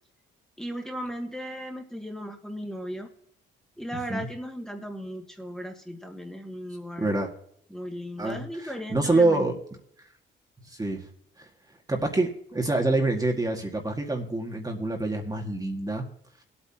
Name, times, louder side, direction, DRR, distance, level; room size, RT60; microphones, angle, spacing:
voice 1, 0.6-3.1 3.8-7.2 7.7-9.4, equal, 5° left, 2 dB, 2.0 m, -36 dB
voice 2, 7.0-7.3 8.2-9.5 10.7-11.0 11.4-11.5 11.9-16.0, right 2 dB, 20° right, 2 dB, 1.9 m, -26 dB
19.0 x 8.7 x 2.8 m, 0.69 s
cardioid pair, 90°, 20 cm